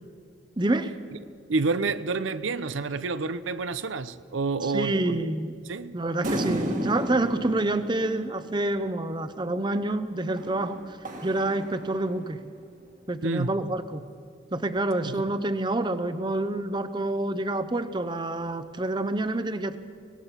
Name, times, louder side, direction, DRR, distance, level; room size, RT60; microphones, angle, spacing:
voice 1, 0.6-0.9 4.6-5.6 5.9-10.8 11.2-12.4 13.1-14.0 14.5-19.8, right 2 dB, 25° right, 0.7 m, -27 dB
voice 2, 1.5-5.2 5.7-6.0 13.2-13.5 15.0-15.3, right 3 dB, 80° right, 0.7 m, -29 dB
sound 1, 6.2-8.9 10.4-12.4, equal, 40° right, 1.6 m, -34 dB
24.5 x 19.0 x 5.8 m
head